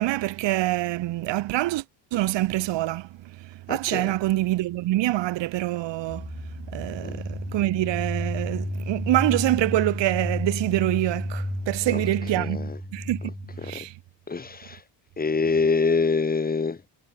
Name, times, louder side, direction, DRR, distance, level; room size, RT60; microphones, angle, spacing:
voice 1, 0.0-1.8 2.1-3.1 3.4-6.3 6.7-13.3 13.6-13.9, right 16 dB, 70° right, 1.0 m, -25 dB
voice 2, 3.7-4.1 7.0-7.2 11.9-12.0 12.4-12.8 13.6-13.9 14.3-14.8 15.2-16.8, left 4 dB, 20° left, 1.4 m, -25 dB
sound 1, 6.1-13.8, left 1 dB, 5° left, 3.7 m, -32 dB
cardioid pair, 110°, 44 cm